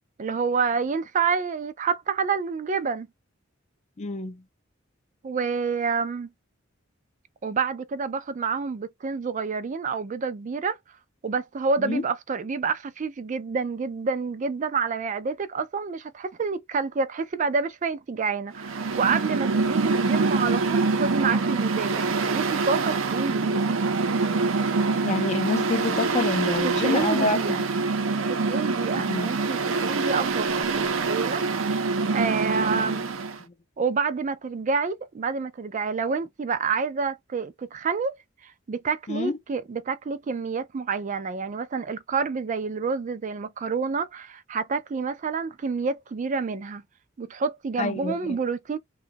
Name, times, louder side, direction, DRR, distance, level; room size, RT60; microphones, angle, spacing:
voice 1, 0.2-3.1 5.2-6.3 7.4-10.8 11.2-23.7 26.6-27.6 28.3-31.4 32.1-33.1 33.8-38.2 38.4-46.8 47.2-48.8, right 5 dB, 40° right, 0.4 m, -28 dB
voice 2, 4.0-4.4 11.8-12.0 25.0-27.7 28.9-29.3 32.7-32.9 33.4-33.5 39.1-39.4 47.8-48.4, left 3 dB, 35° left, 0.5 m, -27 dB
Mechanical fan, 18.5-33.4, right 4 dB, 90° right, 0.6 m, -25 dB
3.0 x 2.3 x 2.7 m
head